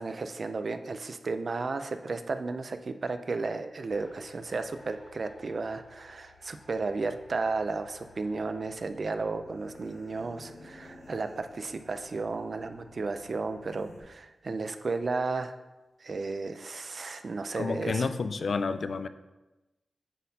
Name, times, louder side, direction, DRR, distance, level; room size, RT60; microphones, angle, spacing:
voice 1, 0.0-15.6 16.0-18.1, right 3 dB, 55° right, 9 dB, 0.4 m, -33 dB
sound 1, 3.9-14.0, left 2 dB, 85° left, 1.7 m, -54 dB
voice 2, 17.6-19.1, left 4 dB, 70° left, 11 dB, 0.3 m, -30 dB
9.0 x 4.2 x 2.8 m, 1.1 s
wide cardioid pair, 100°, 0 cm